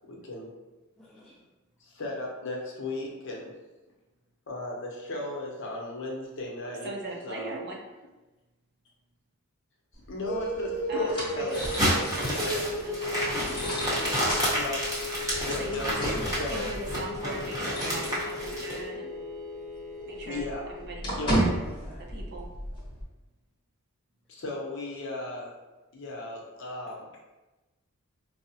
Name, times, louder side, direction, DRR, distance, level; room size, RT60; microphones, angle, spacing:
voice 1, 0.1-0.5 1.8-3.5 4.5-6.9 7.2-7.5 10.1-11.8 12.2-12.6 14.5-15.1 15.5-15.9 16.4-16.8 20.2-20.7 21.2-21.4 24.3-25.5 25.9-27.1, left 2 dB, 55° left, -2 dB, 0.7 m, -36 dB
voice 2, 1.0-1.4 12.4-12.6 21.6-22.0, equal, 5° left, -7 dB, 0.3 m, -50 dB
voice 3, 6.8-7.8 10.9-13.6 15.5-16.0 16.5-19.1 20.1-21.5 22.0-22.5, right 2 dB, 45° right, 0 dB, 0.5 m, -41 dB
sound 1, 9.9-18.8 19.1-19.2 19.6-23.0, right 1 dB, 20° left, 0.9 m, -35 dB
sound 2, 10.2-20.8, left 1 dB, 85° right, 1.0 m, -36 dB
sound 3, 11.5-18.8, equal, 15° right, 0.9 m, -30 dB
4.6 x 2.0 x 2.7 m, 1.1 s
head